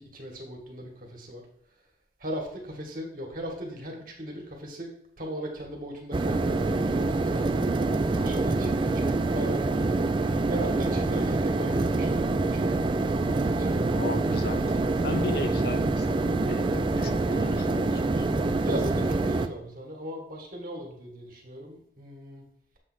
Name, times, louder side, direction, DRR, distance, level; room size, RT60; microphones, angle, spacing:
voice 1, 0.0-1.4 2.2-4.9 5.2-7.6 8.1-10.0 10.2-14.2 18.6-22.4, equal, 45° right, 0 dB, 1.7 m, -38 dB
sound 1, 6.1-19.5, right 2 dB, 25° right, 0.3 m, -26 dB
voice 2, 13.9-18.3, left 2 dB, 55° left, 8 dB, 0.7 m, -35 dB
7.5 x 3.3 x 6.2 m, 0.66 s
head